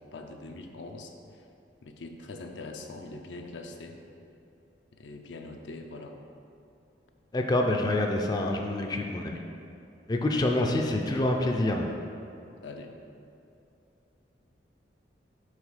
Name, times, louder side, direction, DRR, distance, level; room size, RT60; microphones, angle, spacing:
voice 1, 0.0-1.5 1.8-4.0 5.0-6.2 12.6-12.9, left 2 dB, 85° left, 4 dB, 0.6 m, -43 dB
voice 2, 7.3-9.4 10.1-11.8, left 1 dB, 25° left, 2 dB, 0.4 m, -26 dB
4.9 x 4.0 x 5.5 m, 2.7 s
head